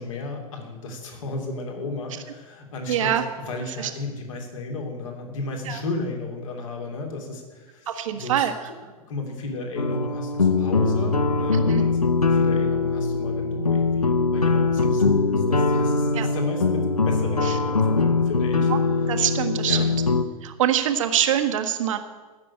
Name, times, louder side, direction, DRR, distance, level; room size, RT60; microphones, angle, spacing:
voice 1, 0.0-3.1 3.4-8.5 9.1-18.7 19.6-19.8, left 3 dB, 60° left, 1 dB, 3.1 m, -34 dB
voice 2, 2.9-3.2 3.8-3.9 5.7-5.8 7.9-8.5 11.5-11.9 16.1-16.3 17.4-17.6 18.7-18.8 19.1-20.0 20.4-22.0, right 10 dB, 60° right, 7 dB, 1.5 m, -24 dB
sound 1, 9.8-20.2, left 4 dB, 85° left, 0.8 m, -22 dB
15.5 x 6.8 x 8.6 m, 1.4 s
figure-of-eight pair, 100°, 19 cm